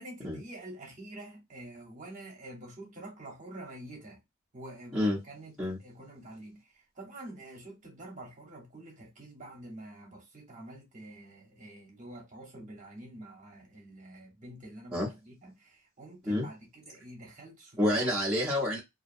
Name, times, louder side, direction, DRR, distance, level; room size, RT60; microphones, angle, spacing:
voice 1, 0.0-4.2 4.5-18.1, right 1 dB, 35° right, 0.9 m, -47 dB
voice 2, 17.8-18.8, left 1 dB, ahead, 0.8 m, -28 dB
2.6 x 2.2 x 2.6 m
head